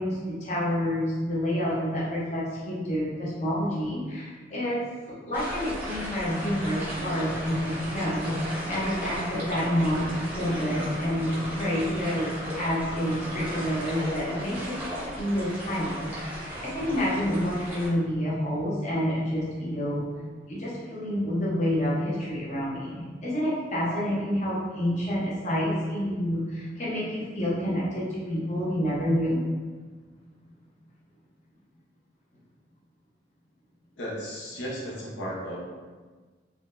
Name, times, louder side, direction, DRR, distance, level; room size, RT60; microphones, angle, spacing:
voice 1, 0.0-4.8 5.3-8.4 8.7-14.8 15.1-20.1 20.5-29.4, equal, 40° left, -7 dB, 0.7 m, -28 dB
sound 1, 5.3-17.9, equal, 10° right, 0.7 m, -36 dB
sound 2, 6.3-13.8, right 1 dB, 55° right, 0.6 m, -40 dB
voice 2, 34.0-35.6, equal, 75° left, -5 dB, 0.7 m, -35 dB
3.6 x 2.1 x 2.4 m, 1.4 s
head